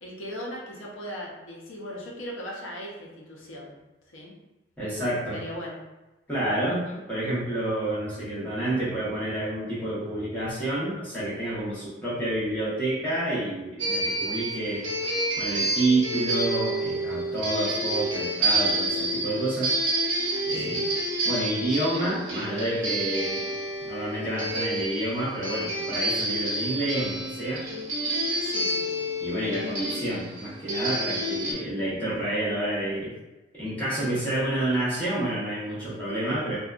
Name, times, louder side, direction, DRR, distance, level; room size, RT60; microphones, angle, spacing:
voice 1, 0.0-3.8 4.1-4.3 5.3-5.8 6.7-7.0 20.7-20.8 28.4-29.1, equal, 85° left, -3 dB, 0.7 m, -39 dB
voice 2, 4.8-5.4 6.3-6.8 7.1-14.9 15.4-19.7 20.5-20.8 21.2-23.4 23.9-27.6 29.2-33.1 33.5-36.6, right 1 dB, 10° left, -10 dB, 0.9 m, -29 dB
sound 1, 13.8-31.5, right 1 dB, 80° right, 0.7 m, -29 dB
2.6 x 2.2 x 2.3 m, 1.1 s
head